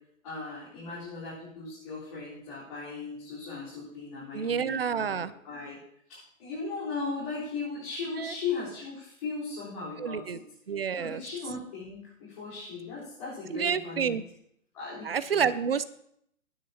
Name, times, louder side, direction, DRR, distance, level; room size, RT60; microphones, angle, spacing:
voice 1, 0.2-5.8 6.1-10.4 10.9-14.2 14.7-15.5, left 4 dB, 30° left, -9 dB, 3.9 m, -37 dB
voice 2, 4.3-5.3 8.2-8.4 10.0-10.4 10.7-11.2 13.5-14.2 15.0-15.8, right 7 dB, 45° right, 15 dB, 0.6 m, -29 dB
21.5 x 9.4 x 2.8 m, 0.72 s
hypercardioid pair, 170°, 40 cm